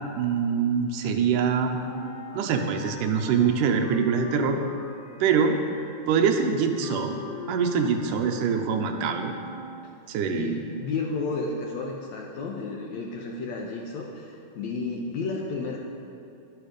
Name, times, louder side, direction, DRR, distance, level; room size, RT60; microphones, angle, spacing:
voice 1, 0.2-1.8 2.3-4.6 5.2-5.6 6.1-7.2 7.5-9.3 10.1-10.6, right 6 dB, 75° right, 5 dB, 2.1 m, -24 dB
Wind instrument woodwind instrument, 1.8-10.1, left 5 dB, 55° left, 2.5 m, -40 dB
voice 2, 10.2-15.8, left 3 dB, 75° left, -1 dB, 1.7 m, -32 dB
11.5 x 11.0 x 5.1 m, 2.6 s
omnidirectional pair, 4.2 m